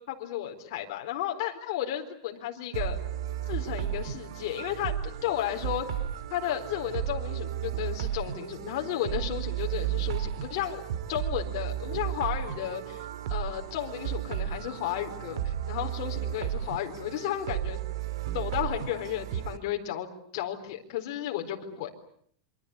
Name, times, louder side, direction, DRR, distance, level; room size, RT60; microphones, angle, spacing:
voice 1, 0.1-3.0 3.5-5.0 5.2-5.9 6.3-10.8 11.1-17.8 18.3-21.9, left 12 dB, 50° left, 3 dB, 4.2 m, -33 dB
sound 1, 2.7-19.6, right 11 dB, 70° right, 2.3 m, -34 dB
27.5 x 25.0 x 8.5 m, 0.63 s
supercardioid pair, 170°, 3 cm